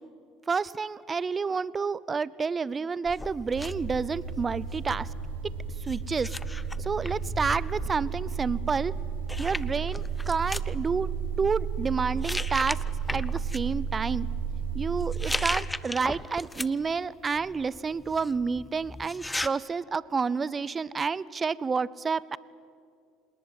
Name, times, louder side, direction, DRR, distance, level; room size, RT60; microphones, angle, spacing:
voice 1, 0.5-5.1 5.8-6.3 6.8-8.9 9.4-11.1 11.4-12.8 13.1-14.3 14.7-22.4, right 5 dB, 30° right, 21 dB, 0.7 m, -29 dB
sound 1, 3.1-4.9 5.9-7.9 9.0-9.1 9.3-10.7 11.5-11.8 12.2-13.6 15.0-16.9 17.3-19.5, left 2 dB, 10° left, 0.8 m, -36 dB
sound 2, 3.5-15.6, right 6 dB, 85° right, 3.2 m, -33 dB
27.5 x 19.0 x 9.8 m, 2.4 s
hypercardioid pair, 70°, 0 cm